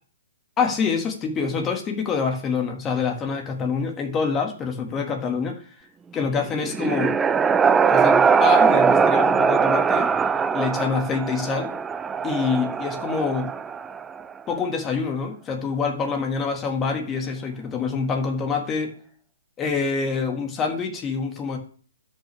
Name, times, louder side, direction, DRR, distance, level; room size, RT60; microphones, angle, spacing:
voice 1, 0.6-5.6 6.1-7.2 7.9-10.1 10.5-11.7 12.2-13.5 14.5-18.9 19.6-21.6, left 5 dB, 15° left, 2 dB, 1.9 m, -26 dB
sound 1, 6.3-14.2, right 6 dB, 10° right, 0.3 m, -21 dB
12.5 x 5.9 x 3.5 m, 0.43 s
hypercardioid pair, 160°, 0 cm